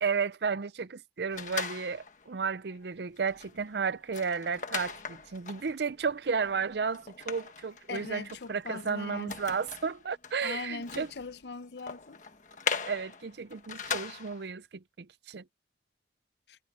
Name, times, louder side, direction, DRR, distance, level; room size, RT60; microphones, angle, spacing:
voice 1, 0.0-11.1 12.9-15.4, right 5 dB, 75° right, 0.6 m, -33 dB
sound 1, 1.3-2.3 2.7-2.9 3.2-14.5, left 6 dB, 45° left, 1.4 m, -40 dB
voice 2, 7.9-9.3 10.4-12.2, left 4 dB, 75° left, 0.7 m, -40 dB
head